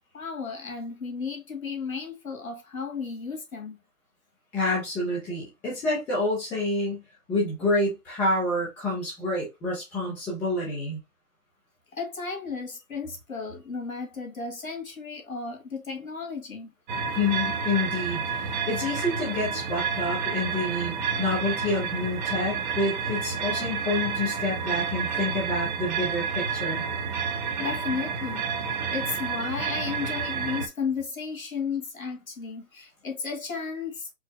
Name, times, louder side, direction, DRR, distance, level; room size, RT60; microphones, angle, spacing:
voice 1, 0.1-3.8 11.9-16.7 27.6-28.5 28.9-34.1, left 5 dB, 80° left, 2.0 m, -34 dB
voice 2, 4.5-7.0 7.3-11.0 17.1-26.8, left 2 dB, 5° left, 0.5 m, -28 dB
sound 1, 16.9-30.7, right 6 dB, 35° right, 0.7 m, -30 dB
4.7 x 2.0 x 3.5 m
hypercardioid pair, 135°, 41 cm